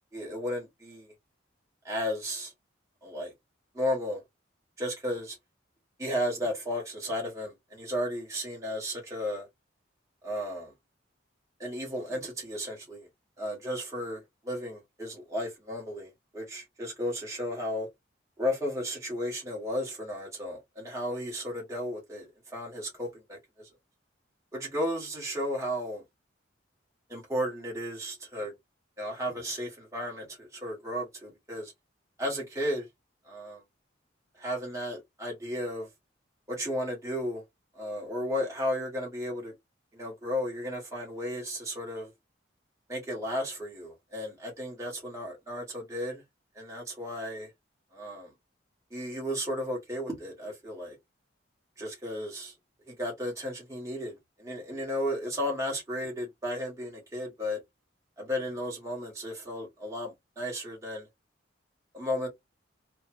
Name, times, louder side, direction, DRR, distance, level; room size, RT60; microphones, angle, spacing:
voice 1, 0.1-1.1 1.8-2.5 3.0-3.3 3.7-4.2 4.8-5.4 6.0-9.5 10.2-10.7 11.6-13.1 13.4-17.9 18.4-23.7 24.5-26.0 27.1-28.5 29.0-31.7 32.2-32.9 33.2-33.6 34.4-35.9 36.5-37.4 37.7-39.5 39.9-42.1 42.9-46.2 46.5-47.5 47.9-48.3 48.9-51.0 51.8-52.5 52.9-57.6 58.2-61.1 61.9-62.3, equal, 15° right, 1.5 m, -34 dB
3.3 x 2.3 x 2.9 m
head